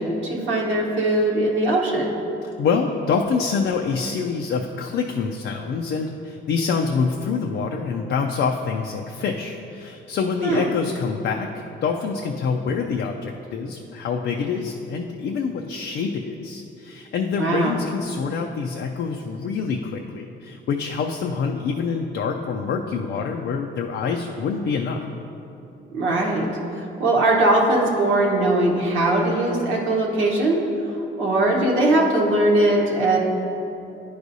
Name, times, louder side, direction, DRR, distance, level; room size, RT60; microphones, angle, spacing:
voice 1, 0.0-2.1 10.4-10.7 17.4-17.8 25.9-26.5 27.0-30.6 31.2-33.2, right 2 dB, 85° right, -3 dB, 1.1 m, -20 dB
voice 2, 2.4-11.5 11.8-25.0, left 5 dB, 65° left, 2 dB, 0.4 m, -26 dB
10.5 x 4.8 x 2.6 m, 2.9 s
cardioid pair, 90°, 20 cm